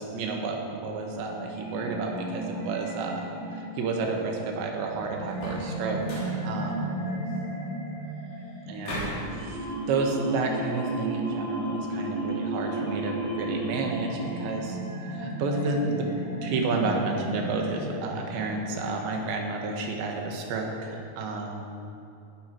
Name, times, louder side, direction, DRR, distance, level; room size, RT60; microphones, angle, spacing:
voice 1, 0.0-3.2 3.5-7.0 8.7-14.8 15.1-16.1 16.4-21.6, right 3 dB, 80° right, 1 dB, 3.7 m, -31 dB
sound 1, 1.1-19.0, right 2 dB, 15° left, 2.0 m, -34 dB
sound 2, 5.3-5.7 6.0-6.4 8.8-9.3, left 1 dB, 50° left, 4.8 m, -35 dB
voice 2, 7.1-7.6 8.1-8.7 12.0-12.1 15.1-15.3 21.2-21.3, left 2 dB, 80° left, -7 dB, 5.6 m, -61 dB
17.5 x 11.0 x 4.6 m, 2.6 s
omnidirectional pair, 5.0 m